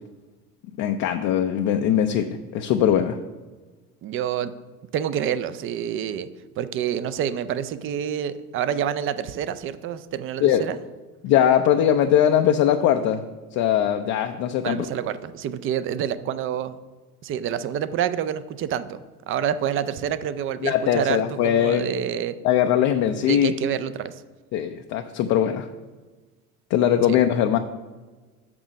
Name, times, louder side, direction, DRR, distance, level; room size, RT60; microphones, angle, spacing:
voice 1, 0.8-3.2 10.4-10.6 11.2-13.2 13.5-14.9 20.6-21.9 22.4-23.5 24.5-25.7 26.7-27.6, left 10 dB, 40° left, 6 dB, 0.5 m, -21 dB
voice 2, 4.0-4.5 4.9-6.3 6.6-10.8 14.6-16.8 17.2-22.4 23.3-24.1 27.1-27.2, right 9 dB, 30° right, 13 dB, 0.4 m, -27 dB
6.1 x 6.0 x 6.3 m, 1.3 s
figure-of-eight pair, 70°, 46 cm